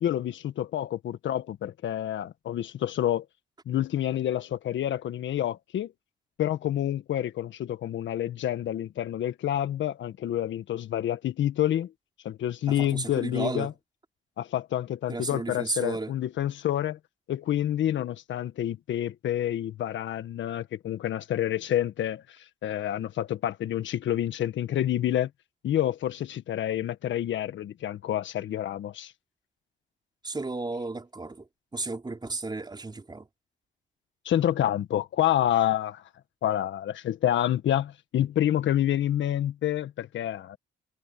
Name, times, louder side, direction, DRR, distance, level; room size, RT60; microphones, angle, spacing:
voice 1, 0.0-3.2 3.6-5.9 6.4-11.9 12.2-13.7 14.4-17.0 17.3-22.2 22.6-25.3 25.6-29.1 34.2-36.0 36.4-40.6, left 11 dB, 70° left, 1.5 m, -28 dB
voice 2, 12.8-13.7 15.1-16.1 30.2-31.5 31.7-33.3, right 3 dB, 20° right, 4.6 m, -33 dB
cardioid pair, 90°, 20 cm